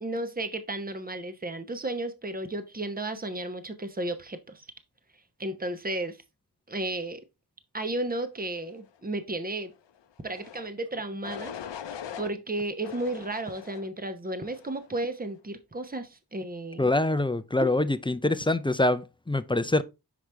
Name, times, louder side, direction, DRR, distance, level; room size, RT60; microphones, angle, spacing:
voice 1, 0.0-4.6 5.4-6.2 6.7-7.2 7.7-9.7 10.2-11.8 12.2-16.9 17.6-17.7, right 1 dB, 20° right, 0.9 m, -33 dB
sound 1, 10.3-10.7 11.2-12.3 12.8-13.9 14.4-14.9, left 8 dB, 85° left, 0.6 m, -41 dB
voice 2, 16.8-19.8, left 2 dB, 15° left, 0.4 m, -25 dB
6.0 x 4.9 x 3.3 m
wide cardioid pair, 65°, 42 cm